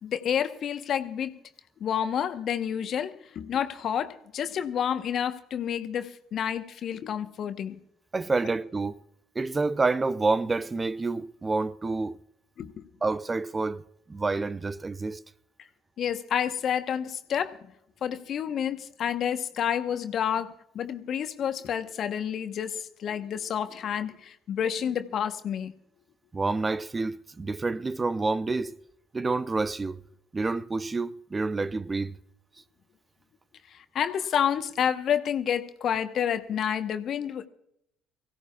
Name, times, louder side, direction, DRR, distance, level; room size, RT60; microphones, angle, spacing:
voice 1, 0.0-1.4 1.8-7.8 12.6-12.8 16.0-17.6 18.0-25.7 33.7-37.5, left 8 dB, 55° left, 1.0 m, -29 dB
voice 2, 8.1-9.0 9.4-12.2 13.0-13.8 14.1-15.2 26.3-28.8 29.1-30.0 30.3-32.2, right 3 dB, 25° right, 0.6 m, -28 dB
24.5 x 16.5 x 2.4 m
hypercardioid pair, 55°, 0 cm